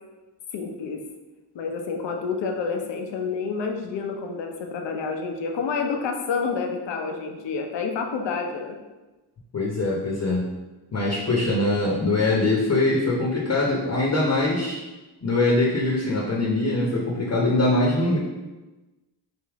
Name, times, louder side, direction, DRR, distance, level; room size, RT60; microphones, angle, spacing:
voice 1, 0.5-1.0 1.5-8.8, left 5 dB, 70° left, 3 dB, 0.7 m, -29 dB
voice 2, 9.5-10.5 10.9-14.8 15.2-18.2, left 2 dB, 35° left, -3 dB, 0.9 m, -22 dB
3.5 x 2.7 x 3.5 m, 1.1 s
cardioid pair, 65°, 45 cm